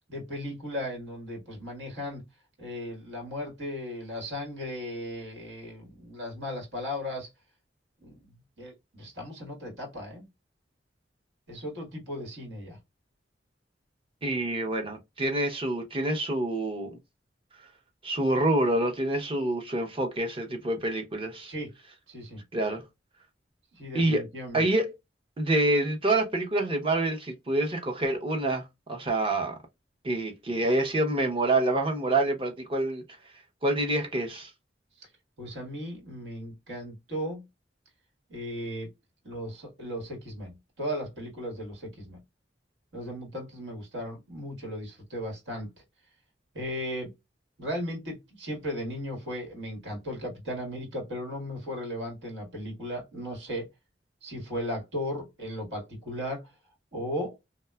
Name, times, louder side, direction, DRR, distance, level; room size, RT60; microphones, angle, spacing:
voice 1, 0.1-2.2 2.6-7.3 8.0-10.3 11.5-12.8 21.5-21.7 22.1-22.4 23.7-24.6 35.0-35.1 35.4-37.4 38.3-38.9 39.2-42.2 42.9-45.7 46.5-47.1 47.6-53.7 54.2-56.5 56.9-57.3, equal, 80° right, 1.5 m, -36 dB
voice 2, 14.2-17.0 18.0-21.5 22.5-22.8 23.9-24.2 24.5-24.9 25.4-29.5 30.0-33.0 33.6-34.5, right 2 dB, 30° right, 0.6 m, -27 dB
2.8 x 2.2 x 2.2 m
head